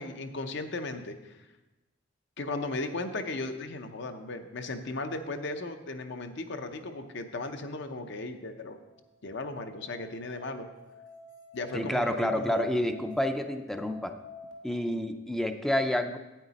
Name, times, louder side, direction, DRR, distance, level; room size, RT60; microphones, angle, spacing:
voice 1, 0.0-1.4 2.4-8.8 9.2-10.7 11.5-12.8, left 2 dB, 65° left, 7 dB, 0.8 m, -36 dB
Musical instrument, 8.8-14.5, left 2 dB, 90° left, 1.7 m, -50 dB
voice 2, 11.7-14.1 14.6-16.2, left 1 dB, ahead, 7 dB, 0.4 m, -29 dB
9.0 x 8.9 x 4.1 m, 1.1 s
head